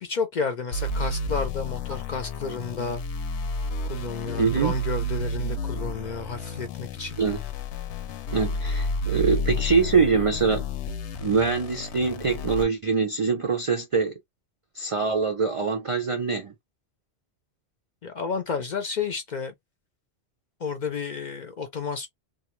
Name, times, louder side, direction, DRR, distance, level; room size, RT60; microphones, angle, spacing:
voice 1, 0.0-3.0 3.9-7.2 18.0-19.5 20.6-22.1, left 5 dB, 55° left, 0.5 m, -31 dB
sound 1, 0.7-12.6, left 1 dB, 80° left, 0.8 m, -31 dB
voice 2, 4.4-4.7 7.2-7.4 8.3-10.6 11.2-14.1 14.7-16.5, right 5 dB, 60° right, 0.3 m, -24 dB
2.3 x 2.3 x 2.9 m
omnidirectional pair, 1.1 m